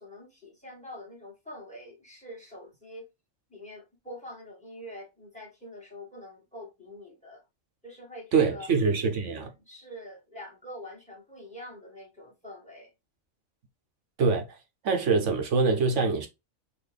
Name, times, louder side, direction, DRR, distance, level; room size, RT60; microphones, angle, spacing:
voice 1, 0.0-3.1 3.5-7.4 7.8-8.7 9.2-12.9, left 1 dB, 5° left, 1.5 m, -45 dB
voice 2, 8.3-9.5 14.2-14.5 14.8-16.3, right 4 dB, 65° right, 1.1 m, -24 dB
4.1 x 2.6 x 3.3 m
omnidirectional pair, 1.4 m